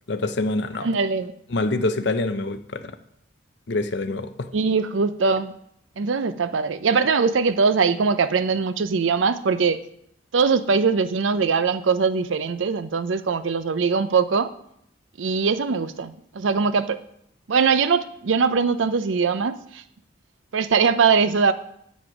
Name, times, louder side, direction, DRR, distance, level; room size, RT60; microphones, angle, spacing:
voice 1, 0.1-0.9 1.5-3.0 3.7-4.5, left 2 dB, 65° left, 9 dB, 0.7 m, -26 dB
voice 2, 0.8-1.3 4.5-5.5 6.0-9.8 10.3-14.5 15.2-17.0 17.5-19.8 20.5-21.5, right 5 dB, 85° right, 12 dB, 0.5 m, -21 dB
7.9 x 7.3 x 5.9 m, 0.74 s
head